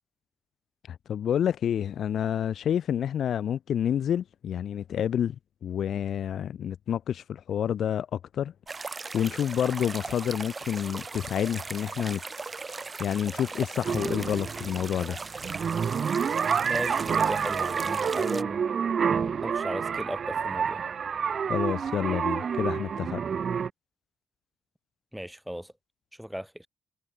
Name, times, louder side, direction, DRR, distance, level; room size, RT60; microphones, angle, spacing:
voice 1, 0.9-5.3 5.6-8.5 9.1-12.2 12.8-15.2 21.5-23.2, left 9 dB, 65° left, 1.3 m, -29 dB
sound 1, 8.7-18.4, right 4 dB, 30° right, 4.5 m, -38 dB
sound 2, 13.9-23.7, right 7 dB, 50° right, 0.6 m, -28 dB
voice 2, 16.6-18.6 19.1-20.8 25.1-25.7 26.2-26.7, equal, ahead, 4.4 m, -36 dB
cardioid pair, 90°, 0 cm